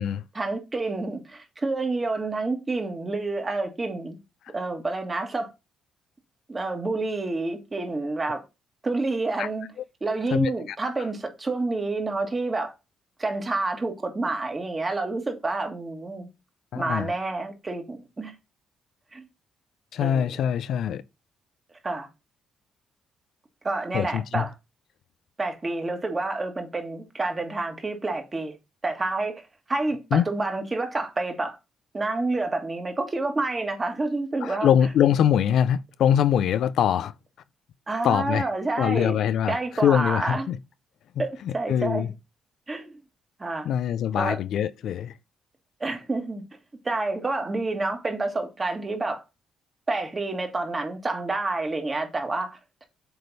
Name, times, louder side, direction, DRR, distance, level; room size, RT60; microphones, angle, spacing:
voice 1, 0.3-4.2 4.5-5.5 6.5-8.4 8.8-9.7 10.0-12.7 13.2-16.3 16.7-18.3 19.1-19.3 20.0-20.3 21.8-22.1 23.6-24.5 25.4-28.5 28.8-31.6 31.9-34.7 37.9-39.2 39.5-40.5 41.2-42.1 42.7-43.0 43.4-43.7 44.2-44.4 45.8-46.4 46.8-49.2 49.9-52.8, right 2 dB, 25° right, 1.7 m, -28 dB
voice 2, 10.3-10.8 16.7-17.1 19.9-21.0 23.9-24.4 30.1-30.3 34.4-37.1 38.0-38.5 38.8-40.6 41.4-42.1 43.7-45.1, left 9 dB, 75° left, 0.4 m, -23 dB
7.8 x 3.4 x 4.0 m
cardioid pair, 90°, 0 cm